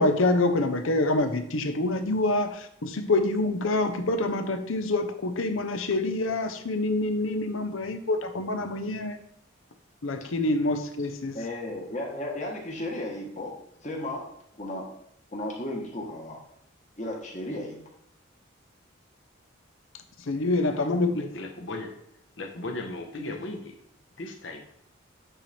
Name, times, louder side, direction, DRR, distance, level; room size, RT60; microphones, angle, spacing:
voice 1, 0.0-9.2 10.0-11.4 20.2-21.3, left 2 dB, 80° left, 7 dB, 0.8 m, -26 dB
voice 2, 11.3-13.5 13.8-14.3 14.6-14.9 15.3-16.4 17.0-17.8, left 1 dB, 35° left, -1 dB, 1.4 m, -34 dB
voice 3, 21.3-21.9 22.4-23.6 24.2-24.6, left 2 dB, 65° left, 2 dB, 1.1 m, -36 dB
8.9 x 3.3 x 4.3 m, 0.74 s
head